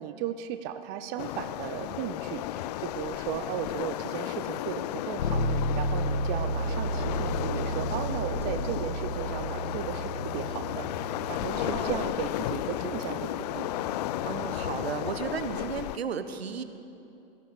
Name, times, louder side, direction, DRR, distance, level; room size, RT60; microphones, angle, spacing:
voice 1, 0.0-13.7, right 10 dB, 35° right, 9 dB, 0.7 m, -36 dB
Waves surf, 1.2-16.0, left 14 dB, 45° left, 0.4 m, -34 dB
Bass guitar, 5.2-15.0, right 1 dB, 65° left, 2.2 m, -34 dB
voice 2, 11.5-12.0 14.2-16.6, right 6 dB, 80° right, 10 dB, 1.2 m, -34 dB
18.0 x 14.5 x 4.9 m, 2.7 s
hypercardioid pair, 120°, 31 cm